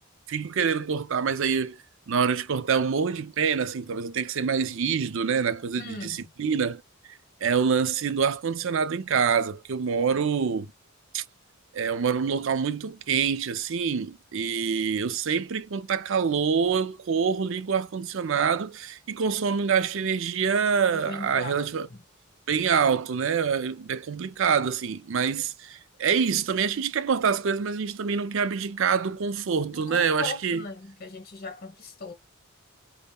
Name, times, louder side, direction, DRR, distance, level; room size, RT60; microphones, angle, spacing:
voice 1, 0.3-1.8 2.1-6.8 7.4-10.7 11.1-11.2 11.7-21.9 22.5-30.6, right 6 dB, 60° right, 0.5 m, -26 dB
voice 2, 5.8-6.3 21.0-22.0 29.7-32.1, left 3 dB, 45° left, 1.2 m, -38 dB
5.3 x 2.1 x 2.3 m
head